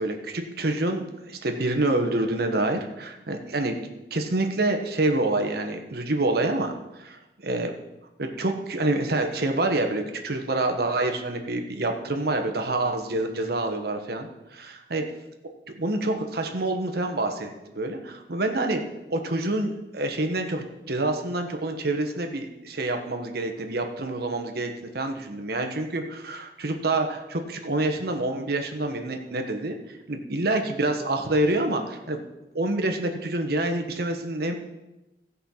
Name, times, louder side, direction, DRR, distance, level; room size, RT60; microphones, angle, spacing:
voice 1, 0.0-7.7 8.2-15.0 15.7-18.8 19.1-32.3 32.5-34.5, right 2 dB, 60° right, 5 dB, 1.3 m, -27 dB
16.0 x 5.6 x 5.7 m, 1.0 s
head